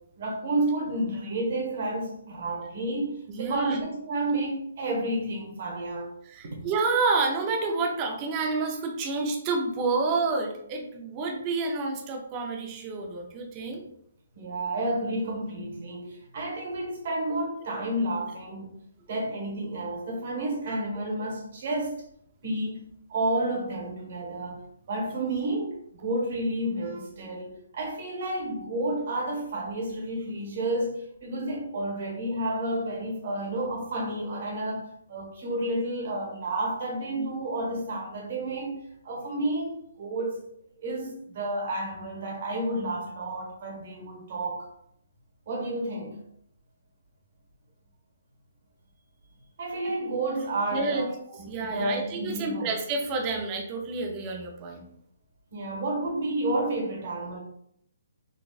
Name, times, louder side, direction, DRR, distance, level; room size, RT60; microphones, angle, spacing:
voice 1, 0.2-6.1 14.3-18.7 19.1-22.0 22.4-24.6 24.9-40.4 40.8-44.7 45.5-46.2 49.6-52.7 55.5-57.4, right 1 dB, 50° right, -1 dB, 1.3 m, -31 dB
voice 2, 3.3-3.8 6.2-13.8 50.7-51.1 51.5-54.9, right 3 dB, 25° right, 1 dB, 0.5 m, -29 dB
3.9 x 2.4 x 2.4 m, 0.71 s
hypercardioid pair, 160°, 0 cm